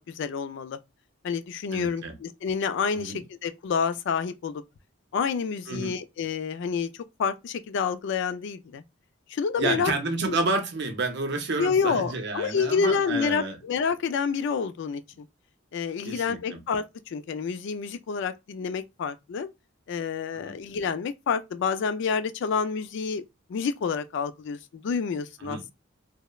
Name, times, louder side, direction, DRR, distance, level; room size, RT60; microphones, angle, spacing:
voice 1, 0.2-0.8 1.2-4.6 5.1-6.9 7.2-8.8 9.3-9.9 10.2-10.4 11.6-15.3 15.7-19.5 19.9-23.2 23.5-25.7, left 6 dB, 60° left, 0.3 m, -28 dB
voice 2, 1.7-2.1 3.0-3.2 5.7-5.9 9.6-13.6 16.0-16.6 20.3-20.5 25.4-25.6, right 3 dB, 60° right, 0.6 m, -30 dB
3.0 x 2.0 x 2.3 m
head